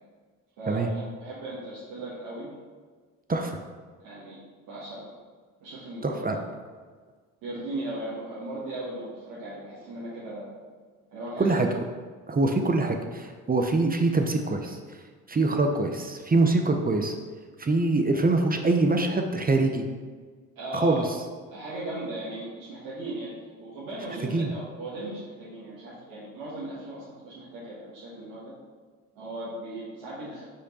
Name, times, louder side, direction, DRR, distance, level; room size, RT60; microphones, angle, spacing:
voice 1, 0.6-2.5 4.0-4.4 4.7-5.0 5.6-6.4 7.4-10.5 11.1-11.5 20.5-21.0 21.4-23.3 23.6-28.5 29.1-30.4, right 1 dB, 80° right, -10 dB, 1.6 m, -37 dB
voice 2, 6.0-6.4 11.4-11.7 12.3-14.8 15.3-17.1 17.6-19.8 20.7-21.0 24.3-24.5, right 2 dB, 25° right, 4 dB, 0.7 m, -24 dB
5.0 x 4.4 x 4.2 m, 1.5 s
hypercardioid pair, 50°, 36 cm